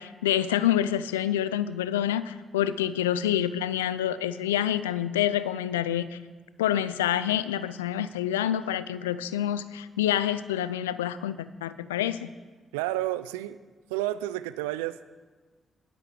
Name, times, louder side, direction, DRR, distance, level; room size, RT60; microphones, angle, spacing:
voice 1, 0.0-6.2 6.6-12.3, left 11 dB, 90° left, 15 dB, 0.4 m, -27 dB
voice 2, 12.7-13.6 13.9-15.0, right 15 dB, 85° right, 14 dB, 0.4 m, -30 dB
11.0 x 10.5 x 7.0 m, 1.4 s
hypercardioid pair, 40°, 0 cm